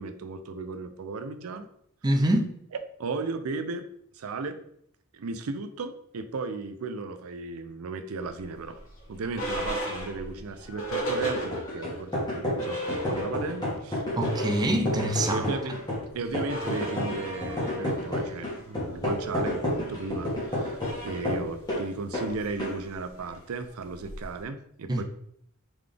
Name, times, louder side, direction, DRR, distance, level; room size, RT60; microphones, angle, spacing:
voice 1, 0.0-1.7 3.0-3.8 4.1-4.6 5.1-8.8 9.1-14.0 15.3-15.8 16.1-25.0, right 3 dB, 80° right, 0.5 m, -35 dB
voice 2, 2.0-2.5 14.1-15.5 24.9-25.0, right 1 dB, 20° right, 0.4 m, -25 dB
sound 1, 8.3-12.0 12.3-12.4 12.6-13.7 14.0-24.4, right 1 dB, 85° left, 1.5 m, -37 dB
sound 2, 11.2-21.8 22.1-22.3 22.6-22.8, left 1 dB, 20° left, 1.5 m, -31 dB
3.8 x 3.5 x 3.3 m
head